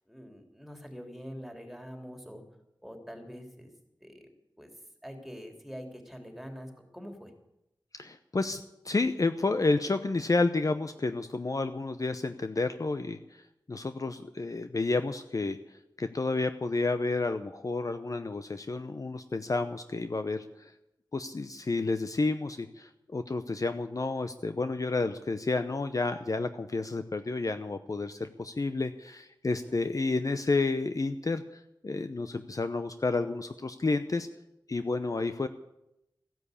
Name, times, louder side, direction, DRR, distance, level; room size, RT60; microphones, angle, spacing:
voice 1, 0.1-2.4 2.8-3.7 4.0-4.3 4.6-4.7 5.0-7.3 29.6-29.7, equal, ahead, 4 dB, 3.3 m, -44 dB
voice 2, 7.9-20.7 21.1-34.3 34.7-35.5, left 3 dB, 45° left, 9 dB, 0.8 m, -30 dB
15.5 x 10.5 x 8.4 m, 0.86 s
wide cardioid pair, 75°, 8 cm